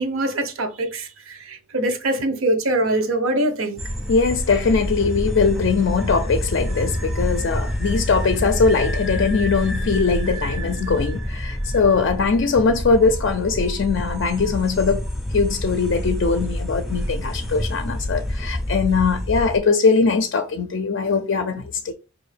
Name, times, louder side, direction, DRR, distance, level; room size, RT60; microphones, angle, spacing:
voice 1, 0.0-3.8, right 1 dB, 80° right, 0.7 m, -23 dB
sound 1, 3.8-19.6, equal, ahead, 0.4 m, -27 dB
voice 2, 4.1-15.0 15.3-21.9, left 4 dB, 60° left, 0.4 m, -21 dB
4.8 x 2.5 x 3.3 m
head